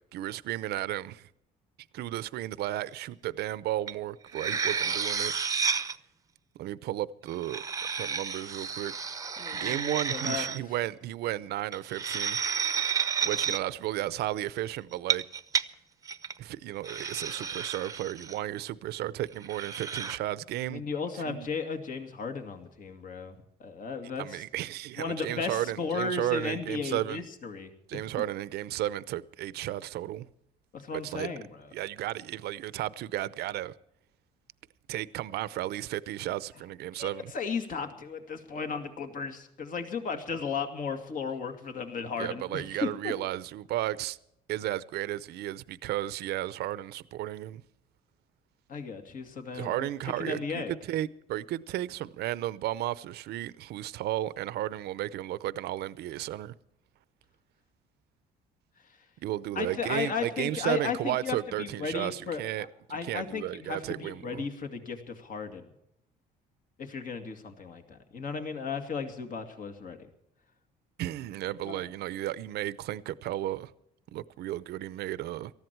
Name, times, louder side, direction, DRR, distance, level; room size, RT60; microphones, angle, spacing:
voice 1, 0.1-1.3 1.9-5.3 6.6-7.6 8.0-8.9 9.6-12.4 13.2-15.2 16.4-20.8 21.1-21.5 24.2-27.2 27.9-30.3 30.9-31.3 31.7-33.7 34.9-37.3 42.2-44.2 44.5-47.6 49.5-56.5 59.2-64.5 71.0-73.7 74.1-75.5, right 14 dB, 75° right, 0.7 m, -34 dB
sound 1, 3.9-4.0 4.3-6.0 7.3-10.6 11.7-13.6 14.9-15.6 16.1-16.3 16.8-18.4 19.4-20.2, right 6 dB, 20° right, 0.8 m, -31 dB
voice 2, 9.4-10.5 20.7-24.4 25.0-28.2 30.7-31.7 36.9-43.1 48.7-49.9 50.2-50.7 59.5-65.7 66.8-70.1 71.6-71.8, left 5 dB, 50° left, 2.3 m, -35 dB
19.0 x 14.0 x 4.6 m
cardioid pair, 110°, 17 cm